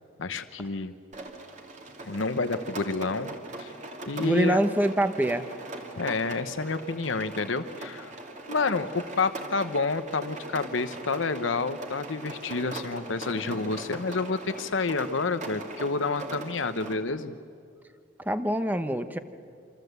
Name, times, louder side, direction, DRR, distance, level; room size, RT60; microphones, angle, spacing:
voice 1, 0.2-0.9 2.0-3.7 4.1-4.6 6.0-8.1 8.5-17.4, left 3 dB, 80° left, 10 dB, 0.9 m, -29 dB
Rain, 1.1-16.9, right 2 dB, 40° right, 2.7 m, -41 dB
voice 2, 4.2-5.5 18.3-19.2, right 1 dB, 10° right, 9 dB, 0.9 m, -25 dB
27.0 x 26.0 x 8.1 m, 2.3 s
head